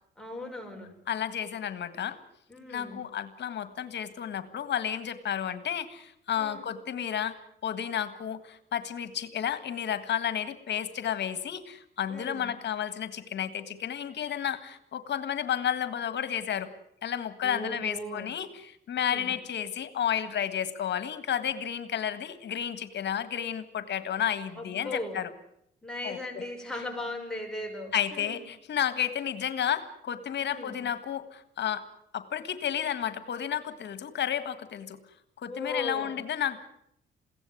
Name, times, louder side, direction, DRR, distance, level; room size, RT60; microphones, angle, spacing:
voice 1, 0.2-0.9 2.5-3.0 6.3-6.6 12.1-12.5 17.4-18.3 19.0-19.3 24.6-25.2 25.8-28.4 30.4-30.8 35.5-36.1, left 2 dB, 5° left, 0 dB, 5.9 m, -38 dB
voice 2, 1.1-2.2 2.7-7.3 7.6-16.7 17.0-25.3 26.0-26.4 27.9-31.8 32.1-35.0 35.4-36.6, left 9 dB, 60° left, 12 dB, 1.7 m, -32 dB
22.5 x 17.0 x 9.4 m, 0.76 s
cardioid pair, 90°, 20 cm